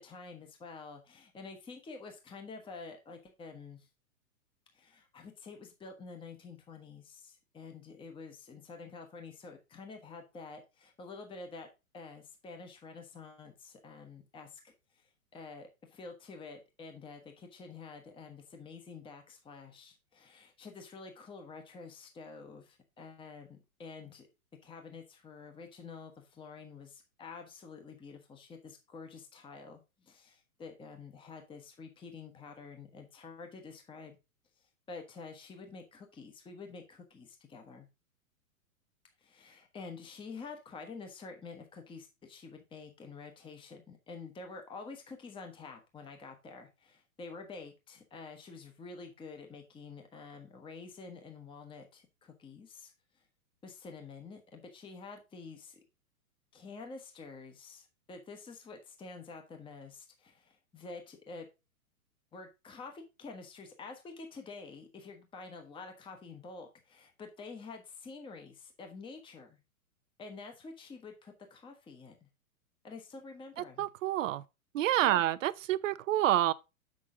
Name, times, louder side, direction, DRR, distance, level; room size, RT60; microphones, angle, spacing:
voice 1, 0.0-3.9 4.7-11.7 11.9-24.3 24.6-34.2 34.6-37.9 39.2-53.2 53.6-55.8 56.5-61.5 62.3-69.6 70.2-72.2 72.8-73.9 75.0-75.2, left 4 dB, 10° left, 1.1 m, -48 dB
voice 2, 73.8-74.4 74.7-76.5, right 13 dB, 60° right, 0.7 m, -28 dB
7.3 x 6.3 x 3.7 m
hypercardioid pair, 115°, 44 cm